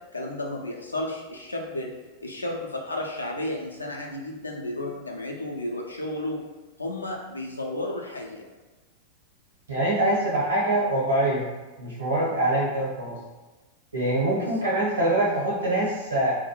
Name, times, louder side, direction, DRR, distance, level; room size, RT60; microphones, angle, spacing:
voice 1, 0.1-1.9 2.2-6.4 6.8-8.5 14.4-14.7, left 1 dB, 80° left, 0 dB, 0.4 m, -33 dB
voice 2, 9.7-11.5 11.8-13.2 13.9-16.3, right 1 dB, 75° right, -5 dB, 0.9 m, -24 dB
2.3 x 2.1 x 2.9 m, 1.2 s
figure-of-eight pair, 90°, 0 cm